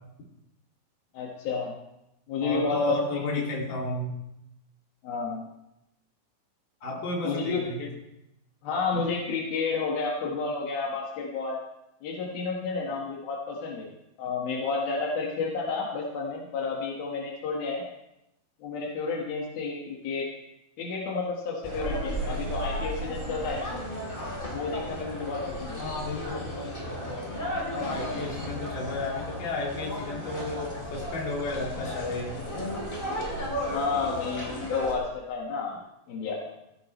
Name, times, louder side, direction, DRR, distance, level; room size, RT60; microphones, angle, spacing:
voice 1, 1.1-1.7 2.3-3.4 5.0-5.5 7.2-7.6 8.6-11.6 12.0-13.9 14.2-17.8 18.6-20.3 20.8-23.6 24.5-25.8 33.7-35.8 36.1-36.4, left 4 dB, 85° left, -2 dB, 3.5 m, -31 dB
voice 2, 2.4-4.1 6.8-7.9 25.8-26.5 27.7-32.4, left 2 dB, 65° left, -3 dB, 4.2 m, -32 dB
sound 1, 21.6-34.9, equal, 15° left, 3.7 m, -34 dB
16.0 x 15.0 x 3.2 m, 0.87 s
omnidirectional pair, 4.1 m